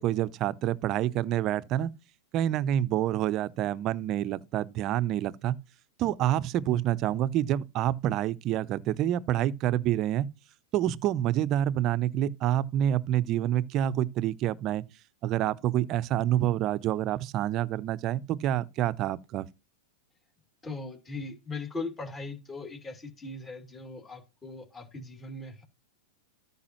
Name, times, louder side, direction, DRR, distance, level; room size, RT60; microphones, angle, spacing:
voice 1, 0.0-1.9 2.3-5.6 6.0-10.3 10.7-14.8 15.2-19.5, right 12 dB, 40° right, 0.6 m, -27 dB
voice 2, 20.6-25.6, left 3 dB, 20° left, 2.7 m, -39 dB
13.5 x 5.5 x 3.1 m
hypercardioid pair, 100°, 0 cm